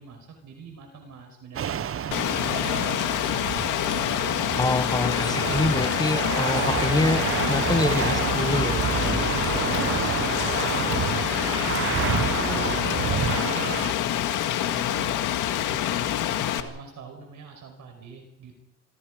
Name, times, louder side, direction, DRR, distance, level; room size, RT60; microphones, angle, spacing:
voice 1, 0.0-2.3 8.9-10.4 10.6-15.2 15.7-18.5, right 4 dB, 70° right, 5.3 m, -44 dB
sound 1, 1.5-13.9, right 9 dB, 45° right, 0.9 m, -29 dB
Rain, 2.1-16.6, left 11 dB, 90° left, 1.9 m, -26 dB
voice 2, 4.6-9.3, left 2 dB, 15° left, 1.1 m, -26 dB
27.5 x 25.5 x 5.1 m
cardioid pair, 90°, 30 cm